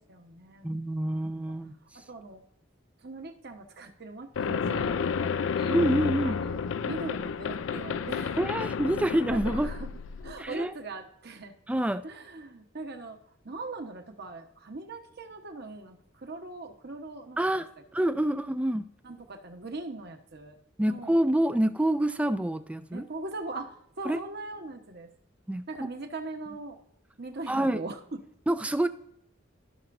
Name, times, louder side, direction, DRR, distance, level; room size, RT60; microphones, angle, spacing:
voice 1, 0.0-0.7 1.1-1.5 1.9-2.4 3.0-5.8 6.2-8.4 9.0-9.9 10.2-11.6 12.0-13.2 13.4-17.6 18.2-18.3 19.0-21.2 22.9-25.1 25.7-26.8 27.2-28.2, right 2 dB, 55° right, 5 dB, 1.2 m, -41 dB
voice 2, 0.6-1.8 5.7-6.4 8.4-9.7 10.4-10.7 11.7-12.0 17.4-18.9 20.8-23.0 24.1-24.2 25.5-25.6 27.5-27.8 28.5-28.9, right 1 dB, 5° right, 11 dB, 0.3 m, -27 dB
sound 1, 4.4-10.4, left 6 dB, 70° left, 0.4 m, -31 dB
15.5 x 5.7 x 2.6 m, 0.77 s
head